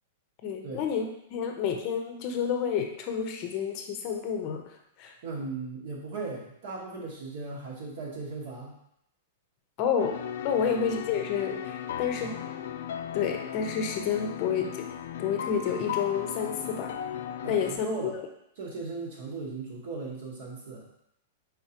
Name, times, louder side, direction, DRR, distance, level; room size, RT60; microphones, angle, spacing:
voice 1, 0.4-4.6 5.0-5.1 9.8-10.2 10.4-12.4 13.1-14.9 15.2-16.9 17.5-18.2, left 7 dB, 35° left, 4 dB, 0.6 m, -29 dB
voice 2, 5.2-8.8 10.5-10.6 12.2-12.4 17.4-18.1 18.6-20.9, right 3 dB, 65° right, -5 dB, 1.2 m, -37 dB
sound 1, 10.0-17.8, left 9 dB, 75° left, 0.4 m, -36 dB
4.7 x 3.7 x 2.9 m, 0.76 s
supercardioid pair, 160°, 0 cm